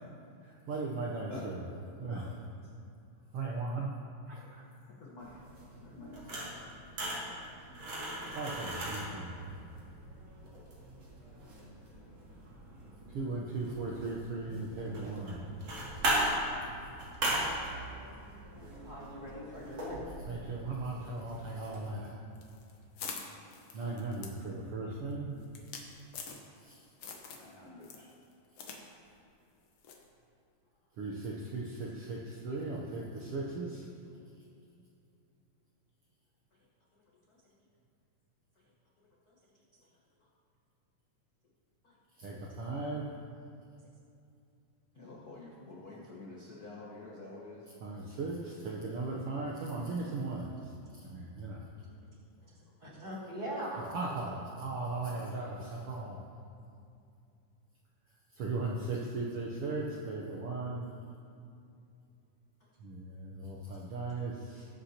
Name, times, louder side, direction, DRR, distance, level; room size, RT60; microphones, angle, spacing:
voice 1, 0.4-1.6 2.0-2.4 3.3-3.9 4.3-4.6 8.3-9.5 13.1-15.7 20.3-22.1 23.7-25.4 26.6-26.7 31.0-33.8 42.2-43.1 47.8-50.7 51.0-51.6 53.9-56.2 58.4-60.9 62.8-64.7, right 3 dB, 90° right, -3 dB, 1.2 m, -37 dB
voice 2, 5.0-5.4 5.8-6.5 8.1-8.4 27.4-28.1 44.9-47.6, left 2 dB, 80° left, -6 dB, 0.8 m, -48 dB
sound 1, 5.2-21.8, right 1 dB, 50° right, 3.3 m, -39 dB
voice 3, 14.8-15.4 18.6-20.0 52.4-52.5 52.8-53.8, right 1 dB, 15° right, -7 dB, 2.1 m, -42 dB
sound 2, 22.4-26.7 27.0-27.5 27.8-28.8 29.1-29.2 29.8-30.1, left 5 dB, 65° left, 1.7 m, -45 dB
19.5 x 8.1 x 2.9 m, 2.6 s
omnidirectional pair, 3.8 m